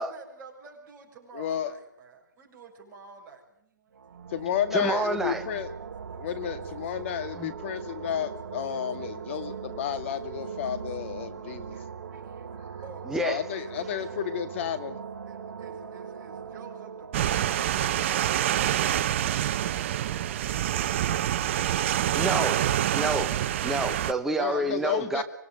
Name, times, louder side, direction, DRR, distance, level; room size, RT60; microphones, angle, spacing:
voice 1, 0.0-4.0 6.1-6.6 6.8-7.0 7.3-8.1 8.6-9.2 9.5-9.6 10.0-10.2 11.7-12.5 12.8-14.2 15.3-19.6 20.1-21.1 24.0-25.2, right 4 dB, 20° right, 6.8 m, -50 dB
voice 2, 1.3-1.7 4.3-5.7 6.2-11.8 13.2-15.0 24.4-25.2, left 9 dB, 40° left, 2.3 m, -31 dB
sound 1, 3.9-19.5, right 6 dB, 70° right, 2.1 m, -41 dB
voice 3, 4.7-5.4 7.4-7.5 13.1-13.4 22.2-22.6 22.9-23.3 23.6-25.2, right 2 dB, 5° right, 1.0 m, -29 dB
sound 2, 17.1-24.1, right 11 dB, 35° right, 1.0 m, -26 dB
25.5 x 19.0 x 9.5 m
hypercardioid pair, 155°, 11 cm